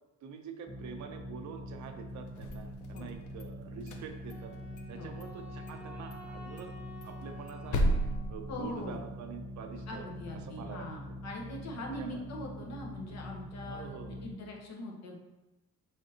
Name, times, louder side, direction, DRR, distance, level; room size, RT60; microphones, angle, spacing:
voice 1, 0.2-4.5 4.9-6.7 7.0-8.0 8.3-11.1 12.0-12.2 13.6-14.3, right 7 dB, 70° right, 5 dB, 0.6 m, -46 dB
sound 1, 0.7-14.3, equal, 15° left, 1.2 m, -44 dB
sound 2, 2.3-3.4 3.8-4.9 5.2-5.3 5.7-5.8 6.1-6.2 6.6-9.2, equal, 75° left, 0.7 m, -34 dB
Wind instrument woodwind instrument, 4.3-8.6, left 1 dB, 5° right, 0.5 m, -52 dB
voice 2, 8.5-9.0 9.9-15.1, left 1 dB, 60° left, 0 dB, 1.1 m, -42 dB
5.0 x 3.5 x 2.8 m, 1.1 s
cardioid pair, 90°, 30 cm